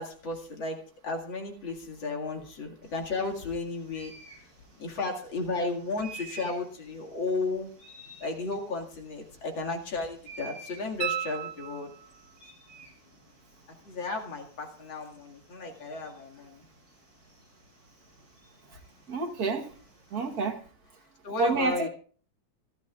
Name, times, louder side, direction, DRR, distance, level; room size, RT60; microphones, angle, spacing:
voice 1, 0.0-4.1 4.4-4.5 4.8-7.7 8.2-11.9 13.8-16.7 21.2-21.9, left 3 dB, 90° left, 2.9 m, -34 dB
sound 1, 2.8-20.5, right 3 dB, 35° right, 7.2 m, -53 dB
sound 2, 11.0-12.3 15.1-15.2, right 10 dB, 85° right, 1.6 m, -34 dB
voice 2, 19.1-19.7 20.1-20.6 21.4-21.9, right 3 dB, 55° right, 1.7 m, -28 dB
26.5 x 11.0 x 2.4 m
omnidirectional pair, 2.1 m